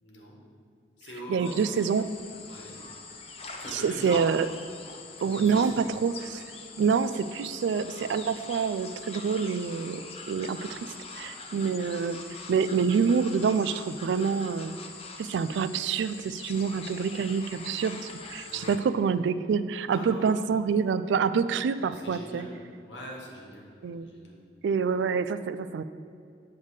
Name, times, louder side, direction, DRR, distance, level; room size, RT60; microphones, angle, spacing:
voice 1, 0.0-0.4 1.0-1.6 2.5-2.8 3.6-4.2 5.2-5.7 18.5-18.8 19.9-20.3 21.9-22.6 22.9-23.6 24.0-24.3, equal, 90° left, -2 dB, 1.6 m, -41 dB
voice 2, 1.3-2.1 3.7-4.5 5.2-6.4 6.8-10.0 10.3-10.8 11.2-12.2 12.5-14.8 15.2-22.5 23.8-24.1 24.6-25.8, right 6 dB, 80° right, 14 dB, 0.3 m, -27 dB
sound 1, 1.4-18.8, left 4 dB, 35° left, 0.6 m, -43 dB
7.9 x 3.6 x 6.5 m, 2.4 s
head